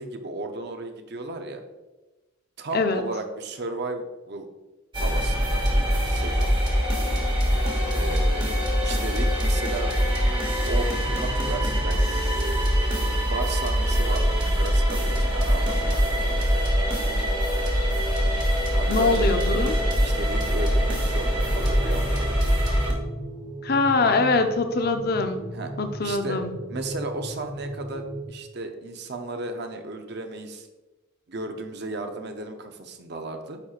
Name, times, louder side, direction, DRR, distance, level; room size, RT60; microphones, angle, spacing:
voice 1, 0.0-1.6 2.6-4.5 5.0-6.5 7.9-8.5 8.8-9.9 10.7-12.7 13.3-16.2 18.7-19.2 20.0-22.3 25.5-25.7 26.0-26.4 26.7-30.7 31.3-33.6, right 2 dB, 50° right, 5 dB, 0.6 m, -34 dB
sound 1, 4.9-22.9, equal, 20° right, 1.1 m, -23 dB
voice 2, 18.9-19.7 23.6-25.5 25.8-26.5, left 3 dB, 50° left, 7 dB, 0.5 m, -23 dB
sound 2, 21.4-28.3, right 1 dB, 10° left, 0.9 m, -36 dB
9.6 x 4.4 x 2.4 m, 1.1 s
head